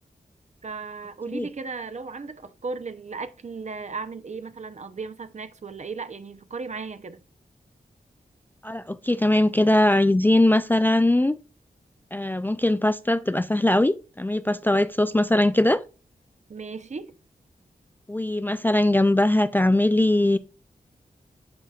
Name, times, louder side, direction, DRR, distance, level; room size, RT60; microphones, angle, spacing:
voice 1, 0.6-7.2 16.5-17.1, right 4 dB, 50° right, 0.7 m, -36 dB
voice 2, 8.6-11.4 12.1-15.8 18.1-20.4, left 1 dB, 10° left, 0.3 m, -21 dB
12.0 x 4.2 x 2.4 m
wide cardioid pair, 115°, 16 cm